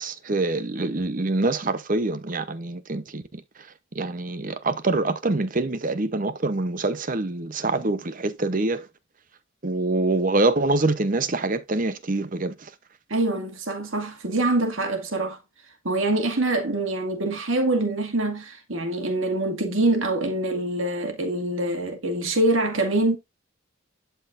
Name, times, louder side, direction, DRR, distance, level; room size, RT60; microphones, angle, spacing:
voice 1, 0.0-3.4 3.9-8.9 9.6-12.7, right 2 dB, 40° right, 0.8 m, -25 dB
voice 2, 13.1-15.4 15.8-23.2, right 2 dB, 70° right, 2.2 m, -25 dB
11.0 x 4.4 x 2.6 m
head